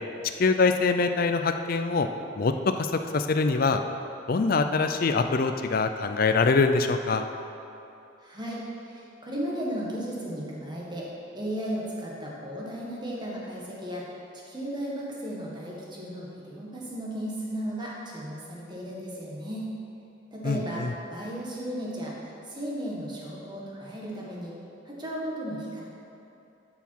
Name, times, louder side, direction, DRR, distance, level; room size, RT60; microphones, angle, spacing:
voice 1, 0.4-2.1 2.4-3.8 4.3-7.2 20.4-20.9, left 4 dB, 50° left, 7 dB, 0.4 m, -24 dB
voice 2, 8.2-8.6 8.8-11.1 11.3-14.0 14.5-19.7 20.3-20.8 21.1-22.1 22.4-24.5 24.8-25.8, equal, 25° right, -4 dB, 1.5 m, -35 dB
11.0 x 5.8 x 4.6 m, 2.8 s
head